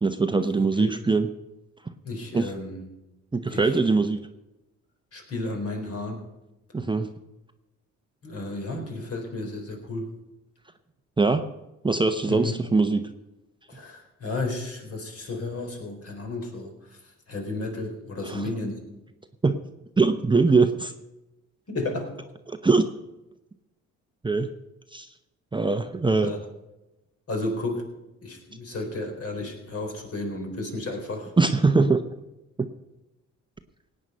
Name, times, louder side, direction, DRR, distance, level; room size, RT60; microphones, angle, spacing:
voice 1, 0.0-1.3 2.3-2.5 3.3-4.2 6.7-7.1 11.2-11.4 11.8-13.0 18.2-18.4 19.4-19.6 20.0-20.9 22.5-22.9 24.2-24.5 24.9-25.1 25.5-26.3 31.4-32.0, right 3 dB, 15° right, 7 dB, 0.8 m, -22 dB
voice 2, 0.6-0.9 2.0-2.8 3.5-3.8 5.1-6.2 8.2-10.1 12.3-12.6 13.7-18.8 21.7-22.2 26.2-26.4 27.3-27.9 28.2-31.3, left 2 dB, 50° left, 2 dB, 4.0 m, -33 dB
17.5 x 9.0 x 5.5 m, 0.97 s
cardioid pair, 90°, 30 cm